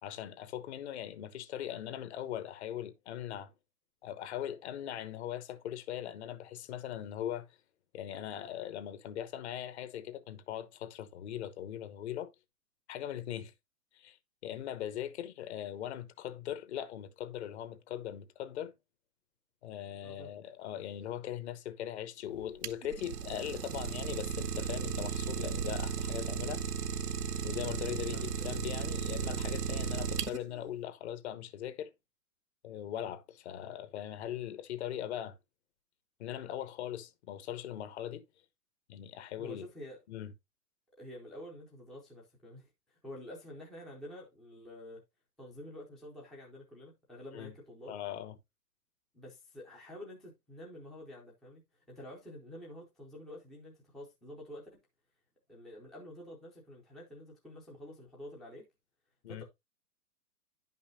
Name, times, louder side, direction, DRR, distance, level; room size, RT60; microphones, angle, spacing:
voice 1, 0.0-3.5 4.0-7.5 7.9-12.3 12.9-13.5 13.9-14.2 14.4-18.7 19.6-26.6 27.4-31.9 32.6-35.3 36.2-38.2 38.9-39.7 40.1-40.3 47.3-47.5 47.9-48.3 59.2-59.4, left 11 dB, 45° left, 1.0 m, -40 dB
voice 2, 20.0-20.3 28.1-28.5 39.4-40.0 41.0-45.0 45.4-48.0 49.1-54.8 55.5-58.7 59.3-59.4, left 1 dB, ahead, 0.4 m, -49 dB
Idling, 22.3-30.7, right 7 dB, 80° right, 0.8 m, -35 dB
10.0 x 5.6 x 2.7 m
hypercardioid pair, 125°, 47 cm